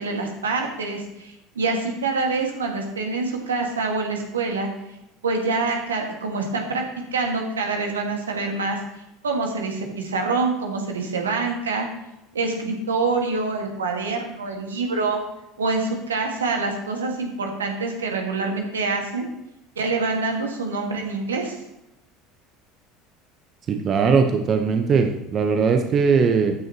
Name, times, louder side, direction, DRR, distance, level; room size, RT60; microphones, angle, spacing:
voice 1, 0.0-4.7 5.2-6.8 7.1-8.8 9.2-11.9 12.3-15.2 15.6-19.3 19.8-21.6, right 3 dB, 75° right, 2 dB, 1.8 m, -26 dB
voice 2, 23.7-26.5, right 5 dB, 40° right, 5 dB, 1.0 m, -20 dB
13.5 x 9.4 x 3.0 m, 0.91 s
figure-of-eight pair, 70°, 0 cm